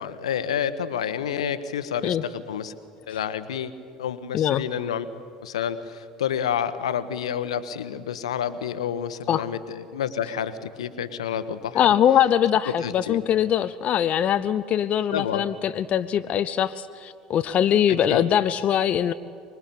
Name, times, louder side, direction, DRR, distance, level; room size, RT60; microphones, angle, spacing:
voice 1, 0.0-2.7 3.1-3.7 4.0-5.1 5.4-11.9 12.7-13.2 15.1-15.5 17.9-18.2, left 8 dB, 75° left, 12 dB, 1.2 m, -29 dB
voice 2, 11.7-19.1, left 10 dB, 40° left, 11 dB, 0.7 m, -22 dB
24.5 x 21.5 x 8.7 m, 2.3 s
figure-of-eight pair, 70°, 3 cm